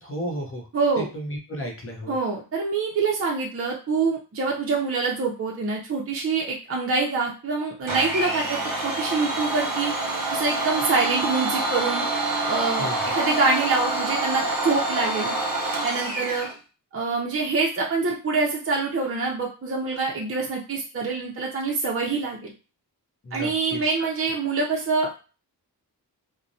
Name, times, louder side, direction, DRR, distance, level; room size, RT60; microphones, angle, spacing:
voice 1, 0.0-0.6 1.1-2.1 12.8-13.0 23.2-23.8, equal, 35° left, 1 dB, 0.7 m, -33 dB
voice 2, 0.7-1.1 2.1-9.9 10.3-12.1 12.5-15.3 15.8-16.5 16.9-22.5 23.3-25.1, right 4 dB, 35° right, -2 dB, 0.5 m, -25 dB
Domestic sounds home sounds, 7.9-16.5, right 2 dB, 55° right, 0.9 m, -27 dB
3.0 x 2.1 x 2.6 m, 0.34 s
wide cardioid pair, 135°, 38 cm